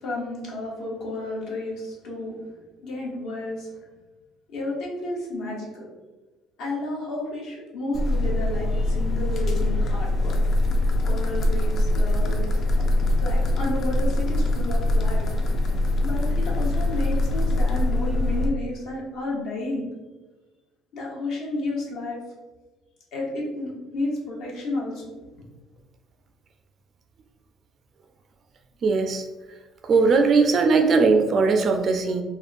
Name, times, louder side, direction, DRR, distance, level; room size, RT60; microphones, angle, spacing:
voice 1, 0.0-2.4 2.8-3.7 4.5-5.9 6.6-10.3 11.0-12.8 13.2-15.3 16.0-19.9 20.9-22.2 23.1-25.0 25.3-25.4, left 2 dB, 70° left, -3 dB, 1.0 m, -31 dB
sound 1, 7.9-18.5, left 1 dB, 45° left, 0.4 m, -23 dB
voice 2, 28.8-29.2 29.9-32.2, right 4 dB, 40° right, 5 dB, 0.3 m, -19 dB
3.4 x 2.2 x 2.5 m, 1.2 s
cardioid pair, 125°, 0 cm